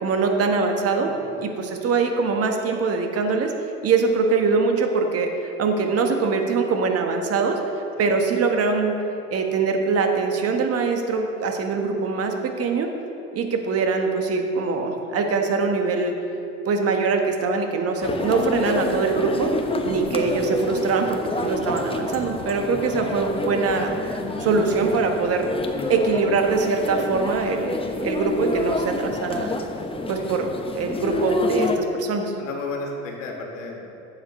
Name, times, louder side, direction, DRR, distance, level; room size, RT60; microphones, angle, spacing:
voice 1, 0.0-1.1 1.4-3.5 3.8-7.6 8.0-8.9 9.3-12.9 13.3-16.1 16.7-19.5 19.8-23.9 24.4-25.5 25.9-29.5 30.1-30.5 30.7-32.3, right 4 dB, 40° right, 4 dB, 1.3 m, -23 dB
sound 1, 18.0-31.8, left 2 dB, 15° left, 0.9 m, -28 dB
voice 2, 32.4-33.9, left 3 dB, 80° left, 0 dB, 1.8 m, -33 dB
12.0 x 8.1 x 3.2 m, 2.8 s
hypercardioid pair, 80°, 37 cm